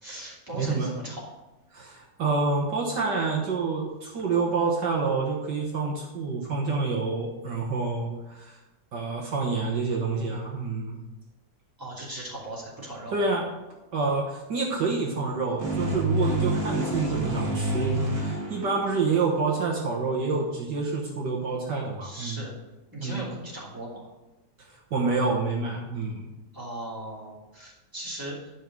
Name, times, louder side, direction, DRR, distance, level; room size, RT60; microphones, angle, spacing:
voice 1, 0.0-1.3 11.8-13.1 22.0-22.5 22.9-24.1 26.5-28.4, right 1 dB, 10° right, -5 dB, 2.7 m, -38 dB
voice 2, 0.5-1.2 1.7-8.5 8.9-11.0 13.1-13.4 13.9-22.4 23.0-23.2 24.9-26.3, right 4 dB, 65° right, -1 dB, 1.9 m, -28 dB
sound 1, 15.6-19.3, right 1 dB, 45° right, 2.7 m, -28 dB
10.0 x 5.4 x 6.1 m, 1.0 s
omnidirectional pair, 2.0 m